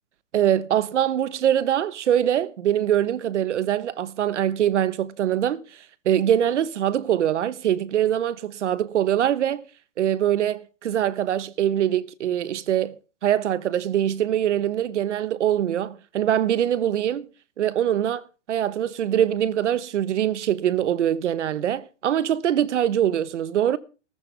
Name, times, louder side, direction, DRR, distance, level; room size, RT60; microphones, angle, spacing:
voice 1, 0.3-5.6 6.0-9.6 10.0-17.3 17.6-23.8, right 10 dB, 70° right, 1.2 m, -23 dB
18.0 x 14.0 x 3.4 m
hypercardioid pair, 160°, 37 cm